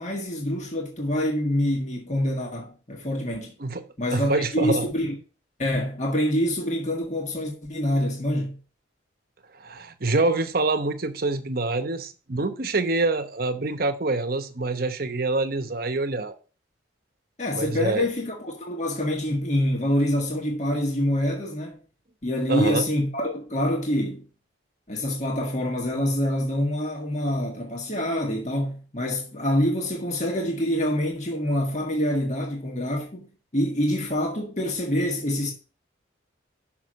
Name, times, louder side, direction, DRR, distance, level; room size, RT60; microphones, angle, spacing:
voice 1, 0.0-3.5 4.0-5.1 5.6-8.6 17.4-21.8 22.2-24.2 24.9-33.3 33.5-35.5, left 1 dB, 35° left, 1.7 m, -26 dB
voice 2, 3.6-4.9 9.6-16.4 17.5-18.1 22.5-22.9, right 2 dB, 50° right, 0.9 m, -26 dB
6.3 x 6.0 x 6.2 m
head